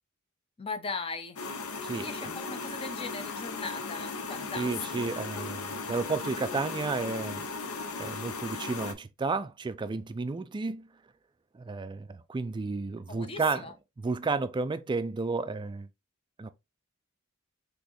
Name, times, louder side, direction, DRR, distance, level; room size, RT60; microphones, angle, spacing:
voice 1, 0.6-1.4 1.9-4.7 13.1-13.7, left 4 dB, 25° left, 0.6 m, -38 dB
sound 1, 1.4-8.9, left 4 dB, 90° left, 0.7 m, -37 dB
voice 2, 1.8-2.3 4.5-7.5 8.0-10.9 11.5-15.9 16.4-16.5, right 4 dB, 20° right, 0.3 m, -32 dB
4.0 x 3.0 x 3.0 m
head